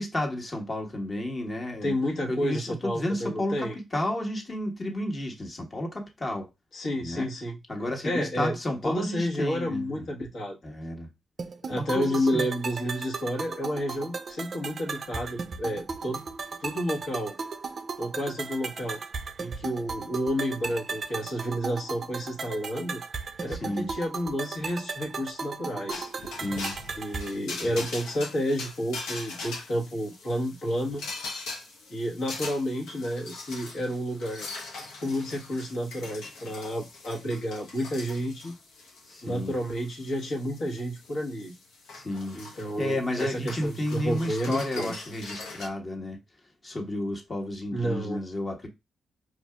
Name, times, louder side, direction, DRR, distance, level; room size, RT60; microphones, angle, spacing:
voice 1, 0.0-1.9 2.3-6.5 7.0-7.3 7.7-10.1 10.6-11.1 11.7-12.5 23.5-23.9 26.3-26.7 27.6-27.8 39.1-39.6 41.9-46.2 46.6-48.7, left 1 dB, 40° left, 1.3 m, -32 dB
voice 2, 1.8-3.7 6.7-7.6 8.0-8.6 8.8-10.6 11.6-16.2 16.6-17.3 18.0-19.0 19.4-23.0 23.4-26.1 27.0-31.1 31.9-34.5 35.0-38.5 39.2-41.5 42.3-44.9 47.7-48.2, equal, 70° left, 1.3 m, -30 dB
sound 1, 11.4-27.4, right 4 dB, 55° right, 0.4 m, -36 dB
sound 2, 25.9-45.7, left 3 dB, 90° left, 0.7 m, -41 dB
4.8 x 2.5 x 2.3 m
supercardioid pair, 55°, 0 cm